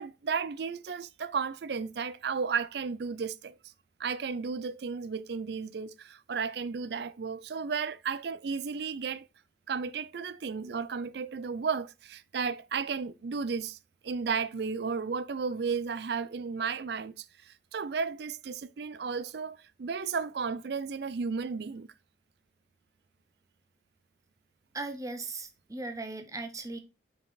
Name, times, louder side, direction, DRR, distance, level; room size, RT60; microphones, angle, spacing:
voice 1, 0.0-3.5 4.0-9.3 9.7-13.8 14.0-21.9, right 5 dB, 60° right, 0.4 m, -34 dB
voice 2, 24.7-26.8, right 3 dB, 20° right, 0.9 m, -38 dB
5.3 x 5.0 x 3.9 m
head